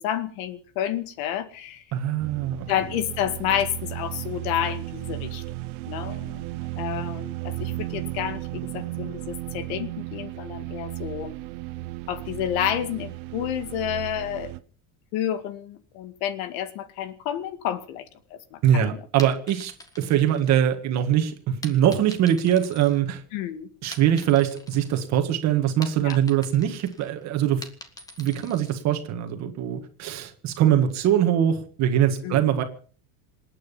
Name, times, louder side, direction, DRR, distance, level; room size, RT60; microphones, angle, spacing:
voice 1, 0.0-1.8 2.7-5.4 5.8-6.5 6.8-11.3 12.1-14.5 15.1-19.0 23.3-23.7 26.0-26.2 32.2-32.5, left 10 dB, 80° left, 11 dB, 2.1 m, -30 dB
voice 2, 1.9-2.7 18.6-23.2 23.8-27.6 28.2-32.6, right 10 dB, 40° right, 6 dB, 1.8 m, -22 dB
sound 1, 2.2-14.6, right 19 dB, 80° right, 1.1 m, -34 dB
sound 2, 19.2-21.0 21.6-23.4 23.8-25.1 25.4-28.8, left 1 dB, 10° left, 1.5 m, -44 dB
27.5 x 9.3 x 5.5 m, 0.43 s
cardioid pair, 175°, 41 cm